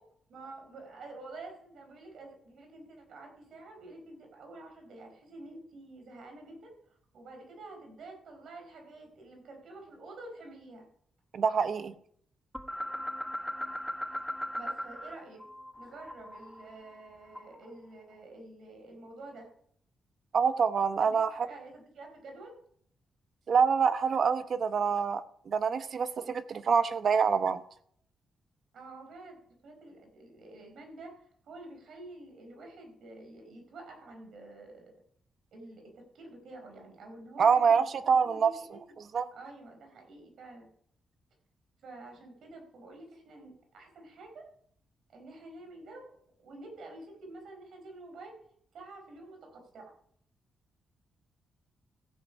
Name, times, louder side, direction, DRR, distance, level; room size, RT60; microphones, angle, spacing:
voice 1, 0.3-6.7 7.1-10.9 14.5-15.4 15.7-19.5 21.0-22.6 28.7-29.4 29.6-31.2 31.4-34.9 35.5-37.8 38.2-39.0 39.3-40.7 41.8-44.5 45.1-46.0 46.4-48.4 48.7-49.9, right 2 dB, 75° right, 3 dB, 4.4 m, -48 dB
voice 2, 11.3-11.9 20.3-21.5 23.5-27.6 37.4-38.5 39.1-39.3, right 6 dB, 55° right, 12 dB, 0.8 m, -26 dB
sound 1, 12.5-15.1 15.4-17.7, equal, ahead, 1.2 m, -38 dB
15.0 x 8.1 x 5.4 m, 0.66 s
cardioid pair, 90°, 0 cm